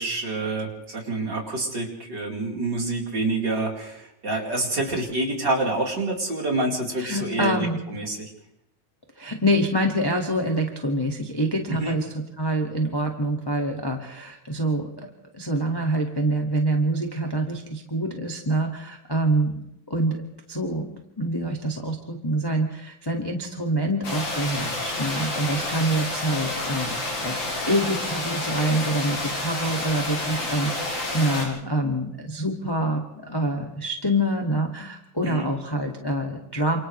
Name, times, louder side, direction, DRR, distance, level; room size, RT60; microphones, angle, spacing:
voice 1, 0.0-8.3 11.7-11.9 35.2-35.5, right 2 dB, 30° right, -1 dB, 4.7 m, -27 dB
voice 2, 7.0-7.8 9.2-14.9 15.3-19.6 19.9-20.2 20.5-27.0 27.2-36.8, right 1 dB, 10° left, 1 dB, 1.3 m, -26 dB
sound 1, 24.0-31.5, left 2 dB, 85° left, 7.7 m, -29 dB
29.5 x 28.0 x 3.3 m, 0.82 s
omnidirectional pair, 4.1 m